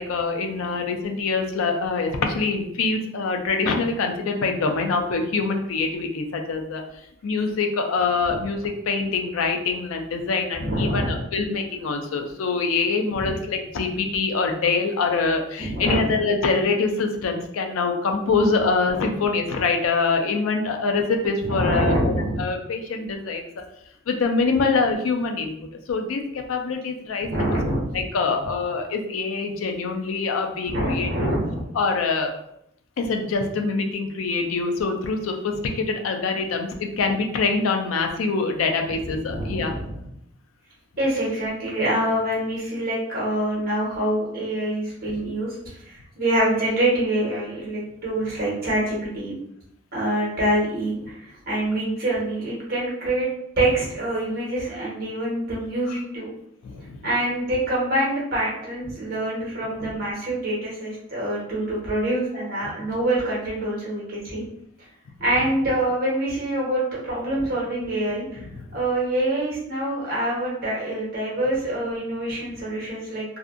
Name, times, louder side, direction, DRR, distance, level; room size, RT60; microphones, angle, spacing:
voice 1, 0.0-6.8 7.2-22.1 22.4-23.5 24.1-25.5 25.9-27.3 27.9-31.4 31.7-32.3 33.0-39.7 56.6-57.0 59.8-59.9, left 4 dB, 85° left, 4 dB, 0.4 m, -24 dB
voice 2, 10.6-11.2 13.1-13.3 15.6-16.0 21.4-22.4 27.3-28.0 30.7-31.6 39.0-40.0 41.0-49.3 49.9-53.3 53.6-56.3 57.0-64.4 65.2-68.4 68.7-73.2, right 1 dB, 45° right, -5 dB, 1.0 m, -25 dB
2.6 x 2.4 x 2.4 m, 0.76 s
head